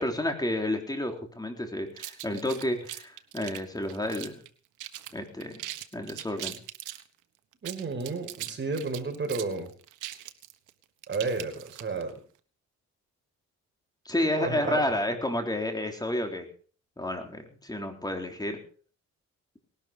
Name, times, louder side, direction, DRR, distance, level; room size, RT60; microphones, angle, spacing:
voice 1, 0.0-4.4 5.1-5.7 5.9-6.6 14.1-16.5 17.0-18.6, left 1 dB, 15° left, 4 dB, 3.8 m, -30 dB
sound 1, 2.0-4.5 4.8-5.1 5.4-7.0 7.5-12.1, right 14 dB, 85° right, 1.4 m, -40 dB
voice 2, 7.6-9.7 11.1-12.2 14.1-14.8, right 4 dB, 40° right, 5 dB, 5.5 m, -32 dB
19.0 x 12.0 x 5.3 m, 0.43 s
cardioid pair, 90°, 30 cm